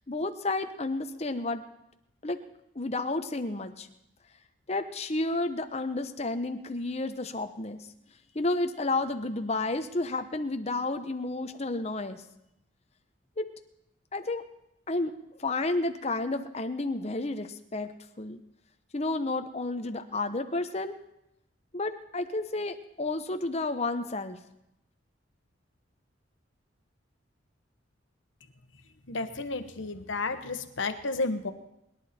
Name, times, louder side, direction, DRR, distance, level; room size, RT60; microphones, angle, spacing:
voice 1, 0.1-1.7 2.2-2.4 2.7-3.9 4.7-7.9 8.3-12.2 13.4-13.5 14.1-14.4 14.9-17.9 18.2-18.4 18.9-21.0 21.7-24.4, left 2 dB, 35° left, 8 dB, 0.9 m, -31 dB
voice 2, 29.1-31.5, left 3 dB, 80° left, 8 dB, 1.2 m, -32 dB
23.5 x 11.0 x 4.4 m, 0.84 s
head